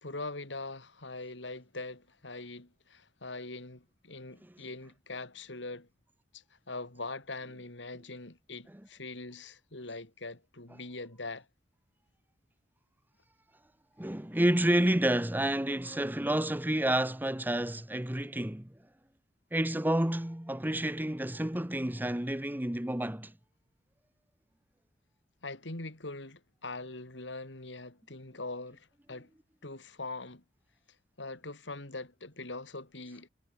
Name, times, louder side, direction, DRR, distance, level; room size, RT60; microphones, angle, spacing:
voice 1, 0.0-5.9 6.3-11.5 25.4-29.3 29.6-30.4 31.2-33.3, left 2 dB, 90° left, 3.6 m, -42 dB
voice 2, 14.0-18.7 19.5-23.3, right 1 dB, 10° right, 1.1 m, -29 dB
head